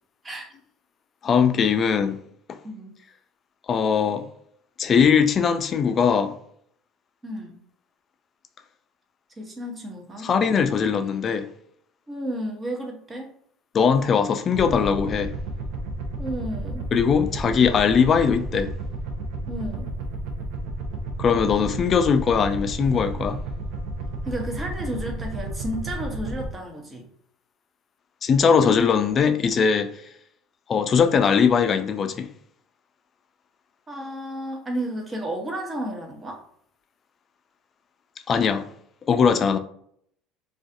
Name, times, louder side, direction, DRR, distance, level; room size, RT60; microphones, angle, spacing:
voice 1, 1.2-2.2 3.7-4.3 4.8-6.4 10.2-11.5 13.7-15.3 16.9-18.7 21.2-23.4 28.2-29.9 30.7-32.3 38.3-38.7 39.1-39.6, left 6 dB, 40° left, 0.3 m, -20 dB
voice 2, 7.2-7.6 9.4-10.3 12.1-13.4 16.2-16.8 19.5-19.9 24.2-27.1 33.9-36.4, right 1 dB, 20° right, 0.8 m, -32 dB
sound 1, 14.5-26.5, right 2 dB, 75° right, 0.5 m, -32 dB
2.4 x 2.4 x 2.5 m
supercardioid pair, 85°, 0 cm